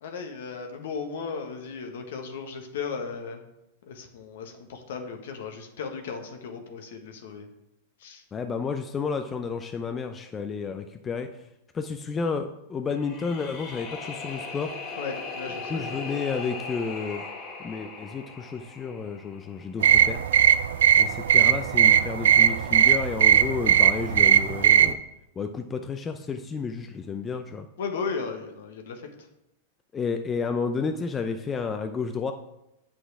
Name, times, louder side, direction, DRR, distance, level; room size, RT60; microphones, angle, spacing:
voice 1, 0.0-3.4 3.8-7.5 8.0-8.2 15.0-16.0 27.8-29.1, left 5 dB, 65° left, 4 dB, 1.4 m, -35 dB
voice 2, 8.3-11.3 11.7-14.8 15.7-17.2 17.6-20.2 21.0-25.0 25.4-27.7 29.9-32.3, left 5 dB, 20° left, 7 dB, 0.6 m, -31 dB
sound 1, 12.9-20.0, left 3 dB, 40° left, 1.7 m, -38 dB
sound 2, 19.8-24.9, right 9 dB, 70° right, 0.5 m, -19 dB
8.0 x 6.1 x 4.8 m, 0.88 s
hypercardioid pair, 105°, 0 cm